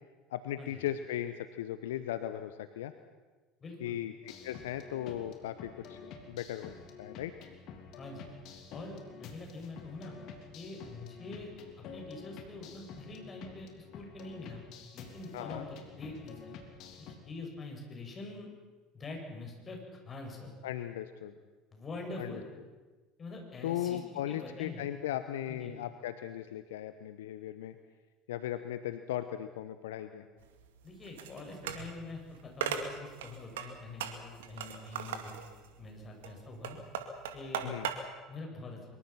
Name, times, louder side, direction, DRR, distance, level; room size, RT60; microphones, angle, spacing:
voice 1, 0.3-2.9 3.8-6.0 6.3-6.7 7.0-7.3 15.3-15.6 20.6-21.3 22.2-22.4 23.6-27.8 28.3-30.3 37.6-37.9, left 12 dB, 70° left, 11 dB, 0.9 m, -37 dB
voice 2, 3.6-4.0 8.0-8.3 8.7-10.2 10.5-11.5 11.9-14.6 14.9-16.6 17.0-18.5 18.9-20.5 21.7-22.5 23.2-24.0 24.3-24.8 25.5-25.8 30.8-35.4 35.8-36.8 37.3-37.7 38.3-38.8, left 2 dB, 30° left, 2 dB, 6.9 m, -45 dB
sound 1, 4.2-17.2, left 5 dB, 55° left, 3.3 m, -49 dB
sound 2, 30.4-37.9, right 7 dB, 70° right, 2.1 m, -39 dB
24.0 x 22.5 x 5.9 m, 1.3 s
figure-of-eight pair, 70°, 0 cm